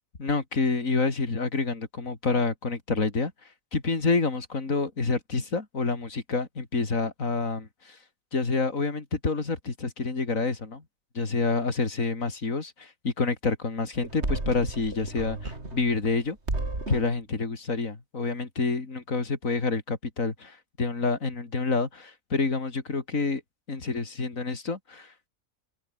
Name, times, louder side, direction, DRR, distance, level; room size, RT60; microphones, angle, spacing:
voice 1, 0.2-8.0 8.3-10.8 11.2-16.4 16.9-23.4 23.7-25.1, left 3 dB, 70° left, 3.6 m, -28 dB
sound 1, 13.9-16.2 16.5-17.2, right 2 dB, 50° right, 4.7 m, -33 dB
open air
omnidirectional pair, 1.4 m